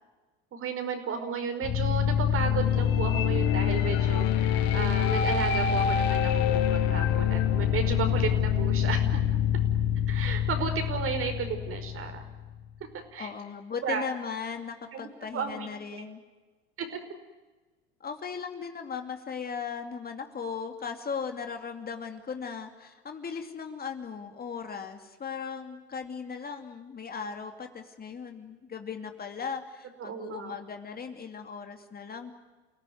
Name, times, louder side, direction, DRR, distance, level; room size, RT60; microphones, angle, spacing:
voice 1, 0.5-9.2 10.1-12.2 12.8-13.3 13.8-14.1 14.9-16.0 16.8-17.0 30.0-30.5, right 6 dB, 40° right, 7 dB, 5.2 m, -34 dB
sound 1, 1.6-12.5, left 9 dB, 60° left, 2.4 m, -26 dB
voice 2, 13.2-16.2 18.0-32.3, left 6 dB, 30° left, 5 dB, 2.7 m, -37 dB
29.5 x 17.5 x 9.4 m, 1.2 s
hypercardioid pair, 80°, 33 cm